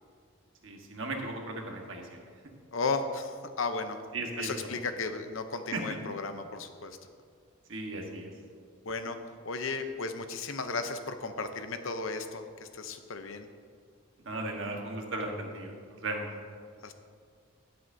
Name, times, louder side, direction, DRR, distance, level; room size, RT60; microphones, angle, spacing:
voice 1, 0.6-2.2 4.1-4.8 5.7-5.8 7.7-8.3 14.2-16.3, right 2 dB, 60° right, 1 dB, 1.4 m, -36 dB
voice 2, 2.7-4.0 4.4-7.0 8.8-9.2 9.4-13.5 16.8-16.9, left 4 dB, 65° left, 8 dB, 0.7 m, -35 dB
16.0 x 7.8 x 2.7 m, 2.1 s
head